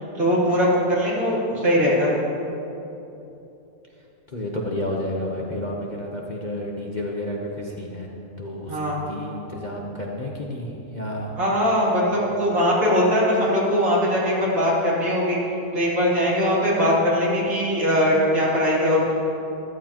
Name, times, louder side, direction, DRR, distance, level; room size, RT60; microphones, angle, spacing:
voice 1, 0.2-2.1 8.7-9.0 11.4-15.4 15.7-19.1, equal, 70° right, -6 dB, 3.3 m, -21 dB
voice 2, 4.3-8.1 8.4-8.8 9.1-11.4, left 1 dB, 35° left, -2 dB, 1.1 m, -30 dB
14.5 x 14.5 x 3.0 m, 3.0 s
omnidirectional pair, 1.5 m